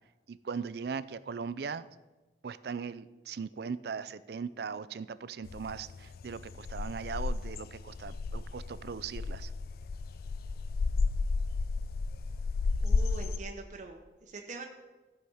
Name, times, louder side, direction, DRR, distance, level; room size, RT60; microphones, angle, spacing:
voice 1, 0.3-1.9 2.4-9.5, right 5 dB, 60° right, 15 dB, 0.4 m, -39 dB
sound 1, 5.4-13.4, left 4 dB, 55° left, 0.3 m, -33 dB
voice 2, 12.8-14.0 14.3-14.6, right 3 dB, 40° right, 2 dB, 0.8 m, -43 dB
13.5 x 5.0 x 5.5 m, 1.2 s
head